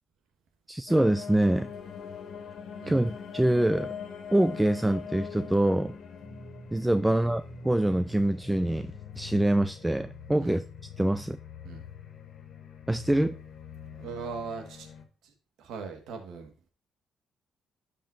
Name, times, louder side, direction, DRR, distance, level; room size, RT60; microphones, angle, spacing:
voice 1, 0.7-1.7 2.9-3.9 4.3-5.9 6.7-10.6 11.0-11.4 12.9-13.4, right 1 dB, 10° right, 0.4 m, -25 dB
sound 1, 0.9-15.0, left 6 dB, 60° left, 1.9 m, -43 dB
voice 2, 13.9-14.9 15.2-15.3 15.6-16.5, right 5 dB, 80° right, 1.6 m, -40 dB
13.0 x 5.3 x 2.6 m
cardioid pair, 90°, 0 cm